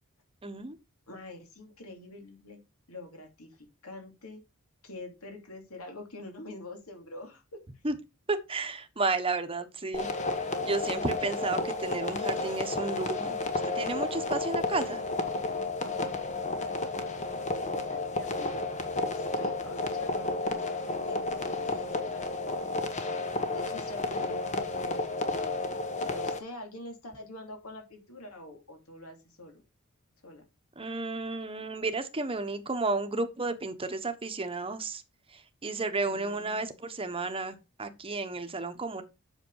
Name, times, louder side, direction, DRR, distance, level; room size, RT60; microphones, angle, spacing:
voice 1, 0.4-0.7 7.8-7.9 8.3-10.1 10.6-13.4 13.7-15.0 30.8-35.0 35.6-39.0, right 3 dB, 25° right, 1.2 m, -32 dB
voice 2, 1.1-2.6 2.9-4.4 4.8-7.6 16.3-22.7 23.5-25.5 26.0-29.6 30.2-30.4 36.0-36.7, left 2 dB, 70° left, 2.9 m, -45 dB
sound 1, 9.9-26.4, left 3 dB, 35° left, 1.3 m, -32 dB
8.0 x 6.2 x 4.7 m
head